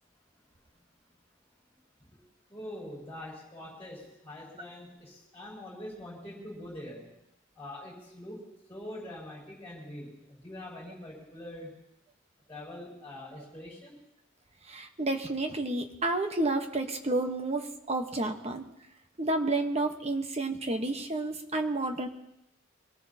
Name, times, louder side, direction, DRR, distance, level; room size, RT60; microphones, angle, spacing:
voice 1, 2.5-7.1 7.6-11.8 12.5-13.9, left 1 dB, 10° left, -5 dB, 6.0 m, -44 dB
voice 2, 14.7-18.6 19.2-22.1, right 2 dB, 30° right, 5 dB, 1.2 m, -30 dB
24.0 x 18.0 x 2.9 m, 0.83 s
head